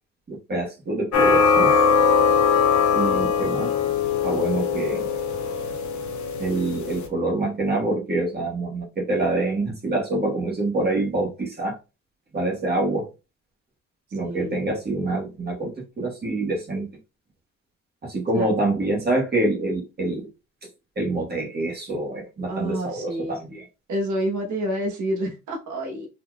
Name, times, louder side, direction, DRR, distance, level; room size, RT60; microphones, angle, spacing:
voice 1, 0.3-1.7 2.9-3.7 4.2-5.1 6.4-11.8 12.3-13.1 14.1-16.9 18.0-20.3 20.9-23.6, right 2 dB, 30° right, 1.4 m, -26 dB
sound 1, 1.1-7.1, left 6 dB, 70° left, 0.8 m, -21 dB
voice 2, 14.2-14.7 18.3-18.5 22.5-23.4 23.9-26.1, right 1 dB, 70° right, 1.2 m, -28 dB
4.1 x 2.8 x 2.3 m
cardioid pair, 90°, 30 cm